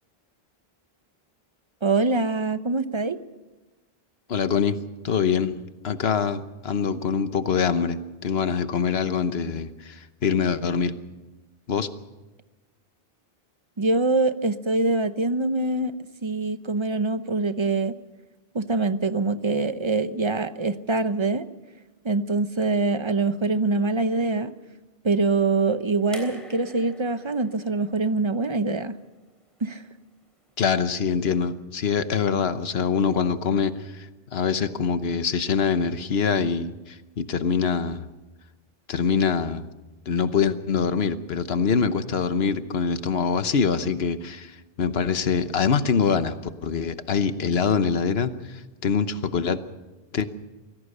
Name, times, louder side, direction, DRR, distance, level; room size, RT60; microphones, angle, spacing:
voice 1, 1.8-3.2 13.8-16.0 16.2-18.0 18.5-21.5 22.0-24.5 25.0-29.0 29.6-29.9, right 3 dB, 30° right, 12 dB, 0.8 m, -24 dB
voice 2, 4.3-4.8 5.0-5.6 5.8-11.0 11.7-11.9 30.6-38.1 38.9-39.7 40.1-46.3 46.6-49.6 50.1-50.3, left 6 dB, 75° left, 12 dB, 1.2 m, -24 dB
sound 1, 26.1-29.3 30.5-30.6, equal, ahead, 3.5 m, -44 dB
24.0 x 17.0 x 6.7 m, 1.1 s
omnidirectional pair, 1.0 m